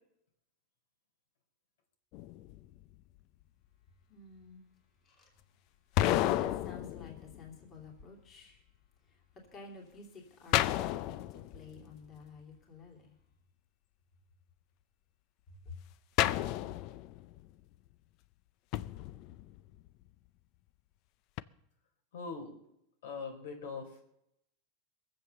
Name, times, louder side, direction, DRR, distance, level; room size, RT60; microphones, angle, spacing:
sound 1, 2.1-3.0 6.0-7.8 10.5-12.0 16.2-17.5 18.7-19.9 21.4-21.5, left 14 dB, 40° left, 0.5 m, -32 dB
voice 1, 3.9-13.2 15.5-15.8, left 4 dB, 25° left, 2.9 m, -52 dB
voice 2, 22.1-22.5 23.0-24.1, left 4 dB, 80° left, 3.8 m, -42 dB
22.0 x 7.7 x 6.9 m
supercardioid pair, 165°, 0 cm